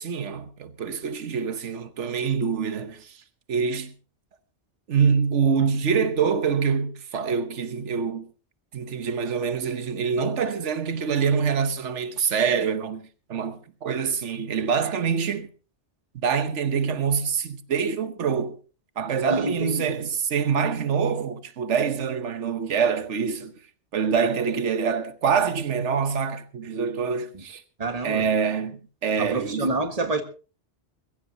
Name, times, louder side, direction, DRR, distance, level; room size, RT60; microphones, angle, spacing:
voice 1, 0.0-3.2 3.5-3.9 4.9-8.3 8.7-13.0 13.3-15.5 16.2-18.5 19.0-23.5 23.9-27.6 28.0-29.7, right 6 dB, 85° right, 1.3 m, -25 dB
voice 2, 19.3-20.1 27.3-27.4 27.8-28.3 29.2-30.2, right 2 dB, 35° right, 1.7 m, -28 dB
22.5 x 15.0 x 2.8 m
omnidirectional pair, 1.2 m